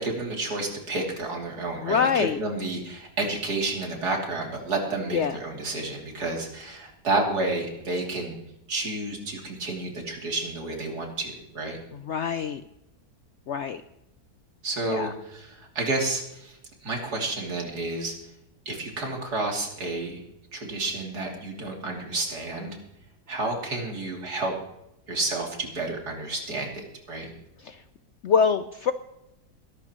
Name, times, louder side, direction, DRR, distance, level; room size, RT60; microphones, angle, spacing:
voice 1, 0.0-8.4 8.7-11.8 14.6-16.6 16.8-18.2 18.7-20.2 20.5-22.8 23.3-24.5 25.1-27.3, right 2 dB, 75° right, 0 dB, 3.5 m, -30 dB
voice 2, 1.8-2.4 5.1-5.4 12.1-12.6 13.5-13.8 14.9-15.1 27.6-27.8 28.2-28.9, left 6 dB, 65° left, 11 dB, 0.7 m, -24 dB
22.0 x 12.5 x 3.0 m, 0.85 s
omnidirectional pair, 1.7 m